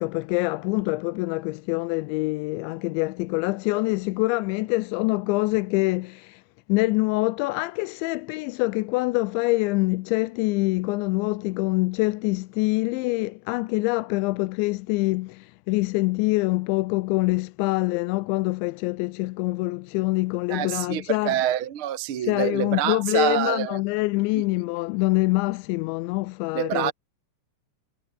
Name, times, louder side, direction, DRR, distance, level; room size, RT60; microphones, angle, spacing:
voice 1, 0.0-6.4 6.7-21.3 22.3-26.9, left 22 dB, 85° left, 3.0 m, -25 dB
voice 2, 20.5-23.8 24.3-24.4 26.5-26.9, right 11 dB, 70° right, 1.2 m, -26 dB
omnidirectional pair, 5.2 m